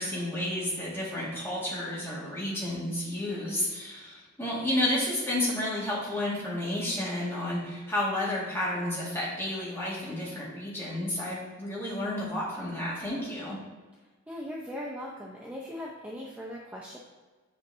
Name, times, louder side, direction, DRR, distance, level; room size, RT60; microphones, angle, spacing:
voice 1, 0.0-13.6, left 1 dB, 10° left, -7 dB, 1.9 m, -31 dB
voice 2, 14.3-17.0, left 1 dB, 5° right, -4 dB, 0.6 m, -39 dB
7.8 x 5.7 x 2.7 m, 1.3 s
head